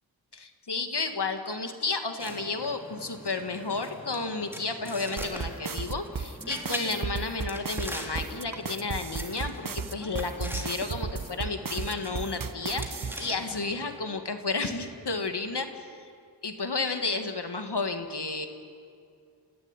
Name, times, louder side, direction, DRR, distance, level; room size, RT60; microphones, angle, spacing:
voice 1, 0.3-16.1 16.4-18.5, left 3 dB, 65° left, 6 dB, 2.1 m, -32 dB
sound 1, 2.2-14.0, equal, 5° right, 3.2 m, -42 dB
sound 2, 5.2-13.2, right 5 dB, 50° right, 0.9 m, -34 dB
28.0 x 15.5 x 9.9 m, 2.3 s
wide cardioid pair, 60°, 43 cm